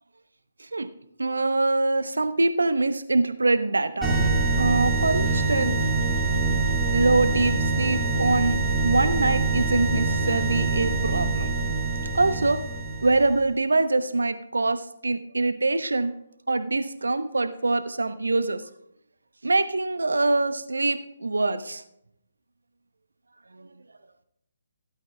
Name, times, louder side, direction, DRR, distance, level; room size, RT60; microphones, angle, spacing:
voice 1, 1.2-4.1 4.6-5.8 6.9-11.5 12.1-12.6 13.0-16.1 16.5-18.6 19.4-21.8, right 2 dB, 70° right, 11 dB, 0.9 m, -24 dB
sound 1, 4.0-13.4, right 3 dB, 5° right, 2.4 m, -25 dB
16.5 x 12.0 x 2.3 m, 0.75 s
figure-of-eight pair, 140°, 0 cm